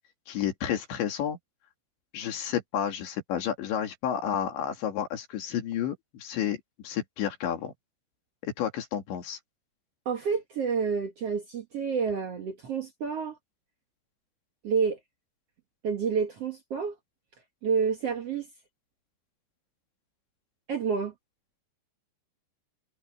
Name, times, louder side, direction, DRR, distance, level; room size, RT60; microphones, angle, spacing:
voice 1, 0.3-1.4 2.1-7.7 8.4-9.4, left 9 dB, 85° left, 5.0 m, -31 dB
voice 2, 10.0-13.4 14.6-15.0 15.8-16.9 17.6-18.5 20.7-21.1, right 6 dB, 65° right, 1.5 m, -29 dB
omnidirectional pair, 5.0 m